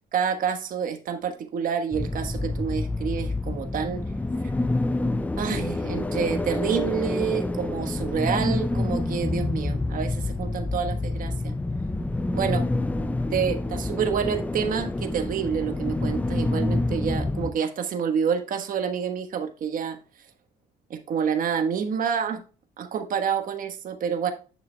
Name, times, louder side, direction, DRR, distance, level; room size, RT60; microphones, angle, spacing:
voice 1, 0.1-4.0 5.4-11.5 12.3-12.6 13.3-20.0 20.9-22.4 22.8-24.3, right 7 dB, 55° right, 6 dB, 1.3 m, -28 dB
sound 1, 1.9-17.5, left 2 dB, 10° left, 0.4 m, -27 dB
8.7 x 6.8 x 2.2 m, 0.35 s
cardioid pair, 110°, 17 cm